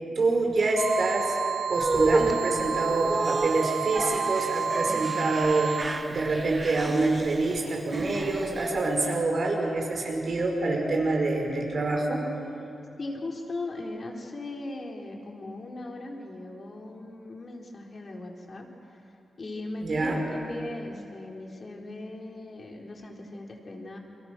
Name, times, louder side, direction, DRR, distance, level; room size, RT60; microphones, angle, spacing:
voice 1, 0.2-1.4 1.7-12.3 19.8-20.2, right 2 dB, 60° right, 1 dB, 5.4 m, -26 dB
sound 1, 0.8-5.8, right 7 dB, 85° right, 1.3 m, -30 dB
sound 2, 1.7-9.1, right 2 dB, 35° right, 1.5 m, -32 dB
voice 2, 13.0-18.7 19.4-24.0, left 2 dB, 50° left, 0 dB, 4.2 m, -38 dB
29.5 x 23.0 x 6.3 m, 2.8 s
cardioid pair, 55°, 0 cm